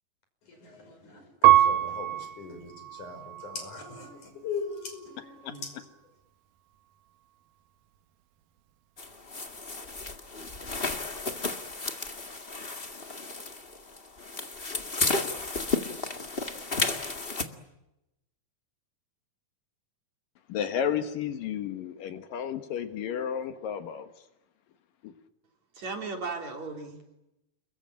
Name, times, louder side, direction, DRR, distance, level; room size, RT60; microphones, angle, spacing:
voice 1, 0.4-5.8, left 5 dB, 60° left, 7 dB, 7.0 m, -40 dB
Piano, 1.4-4.2 4.8-5.5, right 14 dB, 85° right, 3.0 m, -25 dB
sound 1, 9.0-17.4, left 3 dB, 25° left, 1.5 m, -33 dB
voice 2, 20.5-24.1 25.0-25.1, left 8 dB, 75° left, 9 dB, 3.1 m, -32 dB
voice 3, 25.7-27.2, right 4 dB, 55° right, 4 dB, 5.0 m, -36 dB
29.5 x 22.5 x 8.9 m, 0.89 s
omnidirectional pair, 4.0 m